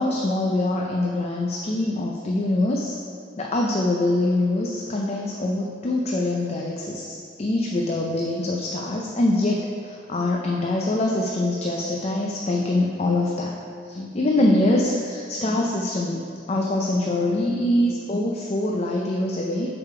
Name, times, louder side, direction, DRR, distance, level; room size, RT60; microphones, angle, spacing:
voice 1, 0.0-3.0 3.4-13.6 13.8-19.7, left 1 dB, 35° left, -1 dB, 0.5 m, -24 dB
6.7 x 4.9 x 4.7 m, 2.3 s
head